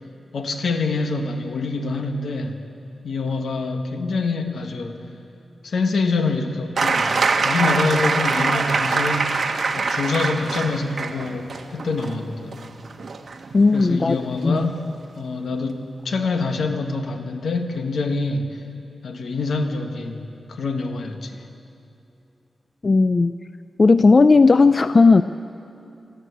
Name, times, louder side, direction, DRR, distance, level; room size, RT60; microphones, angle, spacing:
voice 1, 0.3-2.6 3.0-5.0 5.6-7.2 7.4-9.4 9.8-12.6 13.7-14.8 15.2-18.6 19.0-21.4, left 3 dB, 75° left, 5 dB, 1.7 m, -25 dB
sound 1, 6.8-14.3 15.5-15.6, right 4 dB, 55° right, 1.4 m, -23 dB
voice 2, 13.5-14.2 14.4-14.7 22.8-23.3 23.8-25.2, left 3 dB, 40° left, 12 dB, 0.4 m, -15 dB
22.0 x 14.0 x 8.4 m, 2.7 s
wide cardioid pair, 110°, 0 cm